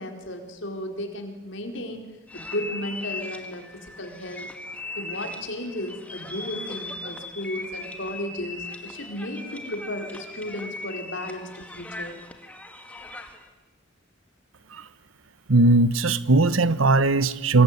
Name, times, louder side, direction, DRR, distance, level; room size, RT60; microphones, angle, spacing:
voice 1, 0.0-2.0 2.3-4.5 5.0-12.2, left 1 dB, 65° left, 4 dB, 4.4 m, -34 dB
sound 1, 2.3-13.5, left 2 dB, 5° left, 2.1 m, -38 dB
voice 2, 15.5-17.6, right 2 dB, 85° right, 16 dB, 1.2 m, -19 dB
26.0 x 22.0 x 9.8 m, 1.1 s
head